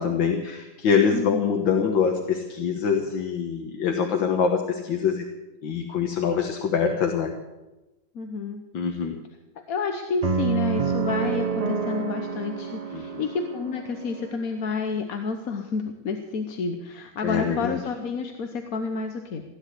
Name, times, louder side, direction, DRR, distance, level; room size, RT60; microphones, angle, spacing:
voice 1, 0.0-5.2 5.6-7.3 8.7-9.2 12.9-13.2 17.2-17.8, left 6 dB, 75° left, 3 dB, 2.0 m, -24 dB
voice 2, 1.1-1.5 8.1-8.6 9.7-19.4, left 4 dB, 55° left, 5 dB, 1.3 m, -30 dB
sound 1, 10.2-14.4, right 5 dB, 80° right, 0.3 m, -28 dB
16.5 x 10.5 x 8.2 m, 1.1 s
omnidirectional pair, 2.1 m